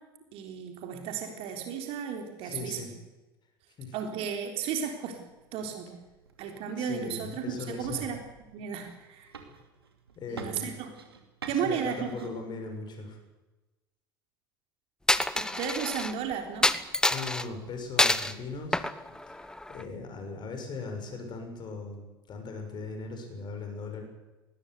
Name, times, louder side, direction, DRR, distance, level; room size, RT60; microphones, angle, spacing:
voice 1, 0.3-2.8 3.9-5.2 5.5-6.0 6.4-8.2 8.5-9.3 10.3-10.9 11.5-12.3 15.3-16.7, right 7 dB, 50° right, 4 dB, 3.8 m, -34 dB
voice 2, 2.4-2.9 3.8-3.9 6.8-8.1 10.2-10.7 11.5-13.2 17.1-18.9 19.3-24.0, left 3 dB, 35° left, 4 dB, 6.8 m, -39 dB
sound 1, 5.2-13.1, right 5 dB, 80° right, 2.7 m, -50 dB
Coin (dropping), 15.1-16.1 16.6-17.4 18.0-18.3 18.7-19.8, left 1 dB, 5° left, 1.1 m, -26 dB
20.5 x 19.5 x 8.2 m, 1.1 s
figure-of-eight pair, 70°, 13 cm